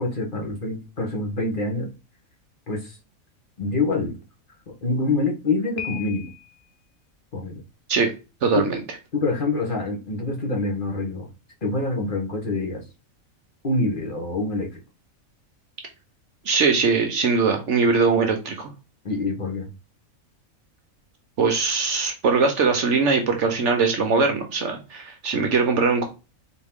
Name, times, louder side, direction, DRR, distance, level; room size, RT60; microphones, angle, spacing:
voice 1, 0.0-1.9 2.7-3.0 3.6-4.2 4.7-6.3 7.3-7.6 8.6-8.8 9.1-11.3 11.6-12.8 13.6-14.8 19.0-19.7, left 2 dB, 40° left, 0 dB, 1.1 m, -26 dB
Piano, 5.8-6.7, left 10 dB, 70° left, 1.2 m, -36 dB
voice 2, 8.4-8.8 16.5-18.7 21.4-26.1, right 4 dB, 60° right, 5 dB, 1.0 m, -21 dB
4.2 x 3.0 x 3.5 m, 0.30 s
omnidirectional pair, 1.5 m